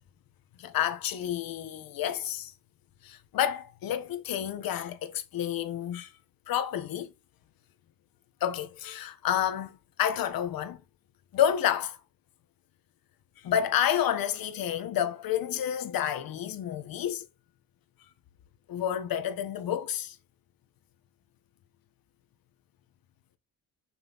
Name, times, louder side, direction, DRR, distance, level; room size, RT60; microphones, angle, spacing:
voice 1, 0.6-2.5 3.0-6.1 6.5-7.1 8.4-10.8 11.3-12.0 13.4-17.3 18.7-20.2, left 10 dB, 65° left, 1.4 m, -29 dB
6.8 x 5.8 x 4.0 m
cardioid pair, 130°, 38 cm